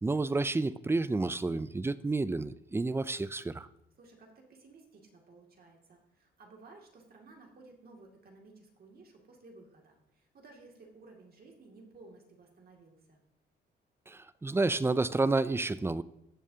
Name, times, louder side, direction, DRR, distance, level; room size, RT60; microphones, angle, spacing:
voice 1, 0.0-3.7 14.1-16.0, right 3 dB, 10° right, 16 dB, 0.4 m, -30 dB
voice 2, 4.0-13.2, right 3 dB, 50° right, 1 dB, 2.4 m, -56 dB
17.0 x 7.1 x 2.8 m, 0.80 s
cardioid pair, 90°, 20 cm